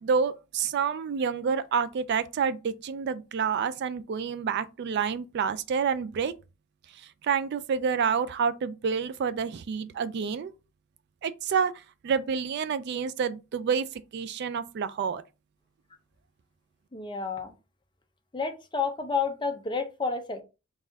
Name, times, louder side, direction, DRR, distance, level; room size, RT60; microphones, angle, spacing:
voice 1, 0.0-6.3 7.0-10.5 11.2-11.7 12.0-13.9 14.1-15.2, right 6 dB, 50° right, 0.3 m, -28 dB
voice 2, 16.9-17.5 18.3-20.4, left 5 dB, 20° left, 0.6 m, -30 dB
4.0 x 2.4 x 3.9 m
head